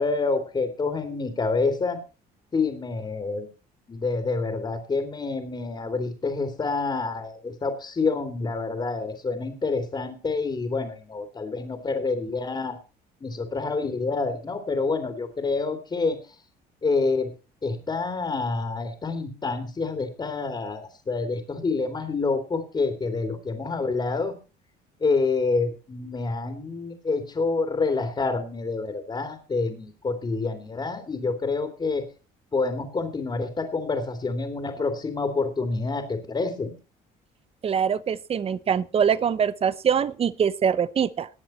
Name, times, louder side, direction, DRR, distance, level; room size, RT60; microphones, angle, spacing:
voice 1, 0.0-2.0 2.5-3.5 3.9-12.8 13.2-16.2 16.8-17.3 17.6-24.3 25.0-32.1 32.5-36.7, left 4 dB, 25° left, 5 dB, 2.7 m, -27 dB
voice 2, 37.6-41.3, right 7 dB, 35° right, 17 dB, 0.8 m, -23 dB
19.5 x 7.7 x 4.3 m, 0.33 s
cardioid pair, 110°, 17 cm